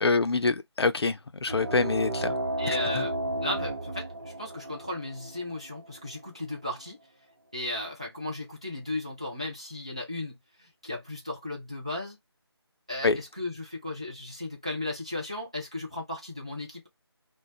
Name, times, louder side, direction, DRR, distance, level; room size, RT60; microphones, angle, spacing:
voice 1, 0.0-2.3 2.7-3.0 13.0-13.2, left 4 dB, 70° left, 0.5 m, -26 dB
sound 1, 1.5-6.6, right 1 dB, 45° right, 0.8 m, -33 dB
voice 2, 2.6-3.1 3.4-7.0 7.5-12.2 12.9-16.9, left 1 dB, 15° right, 0.4 m, -35 dB
2.1 x 2.0 x 3.8 m
figure-of-eight pair, 170°, 14 cm